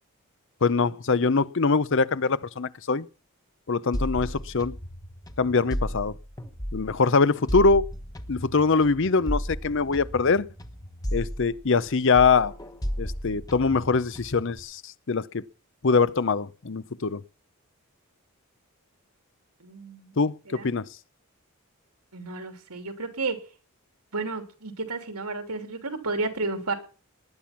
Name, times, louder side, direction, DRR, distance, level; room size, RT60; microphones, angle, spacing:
voice 1, 0.6-3.1 3.7-4.7 5.4-6.1 6.7-7.9 8.3-10.5 11.1-12.5 13.0-14.8 15.1-15.4 15.8-17.2 20.2-20.8, left 4 dB, 55° left, 0.7 m, -23 dB
sound 1, 3.9-7.0 7.5-11.9 12.2-14.6, equal, 15° left, 1.2 m, -34 dB
voice 2, 19.6-20.1 20.5-20.7 22.1-23.4 24.1-26.7, right 3 dB, 90° right, 3.0 m, -32 dB
19.0 x 10.5 x 5.9 m
head